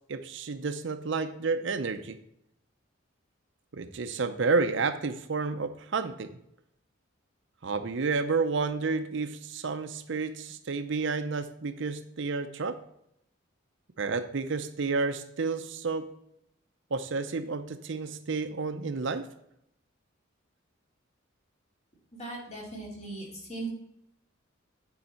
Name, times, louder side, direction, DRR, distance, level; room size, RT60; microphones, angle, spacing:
voice 1, 0.1-2.2 3.7-6.3 7.6-12.8 14.0-16.0 16.9-19.2, right 4 dB, 60° right, 9 dB, 0.6 m, -30 dB
voice 2, 22.1-23.7, right 2 dB, 35° left, -3 dB, 2.9 m, -38 dB
9.5 x 4.9 x 4.3 m, 0.76 s
head